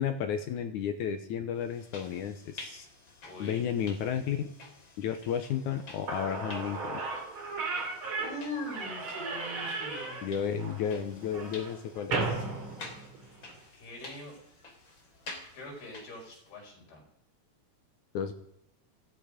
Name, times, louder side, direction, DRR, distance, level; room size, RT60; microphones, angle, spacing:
voice 1, 0.0-2.9 3.4-4.5 5.0-7.0 10.2-12.4 18.1-18.3, left 8 dB, 70° left, 8 dB, 2.0 m, -33 dB
sound 1, 1.6-16.6, left 2 dB, 35° left, 3.2 m, -50 dB
voice 2, 3.2-3.7 8.2-10.3 13.7-14.4 15.5-17.1, left 1 dB, 90° left, -1 dB, 6.9 m, -42 dB
Slam / Squeak, 5.8-5.9 6.1-13.6, right 3 dB, 40° right, 3.0 m, -35 dB
18.5 x 15.5 x 5.1 m, 0.72 s
omnidirectional pair, 4.3 m